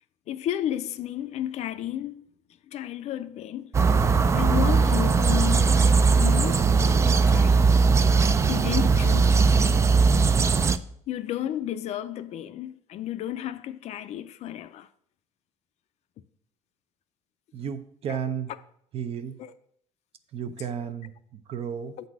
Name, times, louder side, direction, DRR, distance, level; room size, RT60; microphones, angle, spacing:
voice 1, 0.3-2.2 2.7-3.7 4.3-7.7 8.5-9.8 11.1-14.9 18.1-18.2 19.4-19.5, left 12 dB, 60° left, 0.5 m, -32 dB
sound 1, 3.7-10.8, right 4 dB, 20° right, 0.3 m, -20 dB
voice 2, 17.5-18.5 18.9-19.4 20.3-22.0, right 8 dB, 50° right, 0.7 m, -33 dB
8.0 x 4.0 x 6.0 m
cardioid pair, 125°, 13 cm